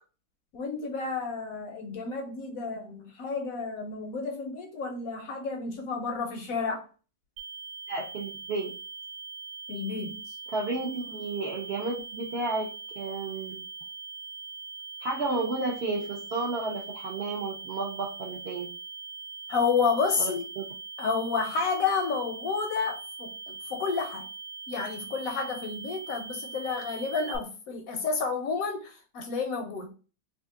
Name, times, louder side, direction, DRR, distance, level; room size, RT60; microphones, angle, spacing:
voice 1, 0.5-6.8 9.7-10.2 19.5-20.4 21.0-24.2 24.7-29.9, left 4 dB, 70° left, 3 dB, 0.9 m, -30 dB
sound 1, 7.4-27.4, right 4 dB, 80° right, 1.1 m, -42 dB
voice 2, 7.9-8.7 10.5-12.7 13.0-13.6 15.0-18.7 20.2-20.7, right 3 dB, 60° right, -3 dB, 0.6 m, -32 dB
2.8 x 2.4 x 3.6 m, 0.36 s
omnidirectional pair, 1.8 m